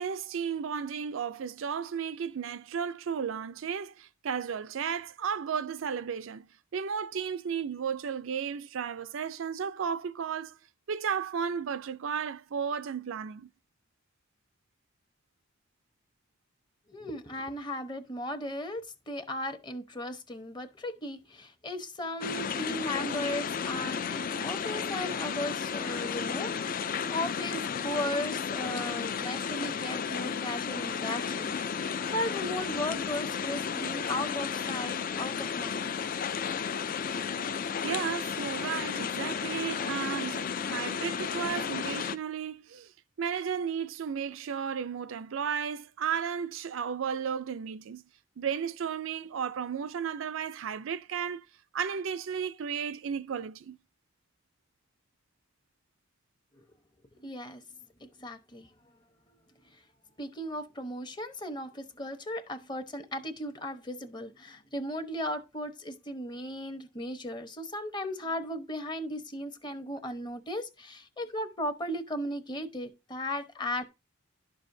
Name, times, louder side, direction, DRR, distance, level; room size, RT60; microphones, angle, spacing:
voice 1, 0.0-10.6 10.9-13.5 37.8-42.9 43.2-48.0 48.4-51.5 51.7-53.8, right 7 dB, 75° right, 0.4 m, -34 dB
voice 2, 16.9-31.6 32.1-35.8 56.6-56.7 57.2-57.6 58.0-58.7 59.6-59.8 60.2-73.8, left 1 dB, 20° left, 0.9 m, -36 dB
sound 1, 22.2-42.2, left 6 dB, 40° left, 0.4 m, -33 dB
11.5 x 6.2 x 2.6 m
head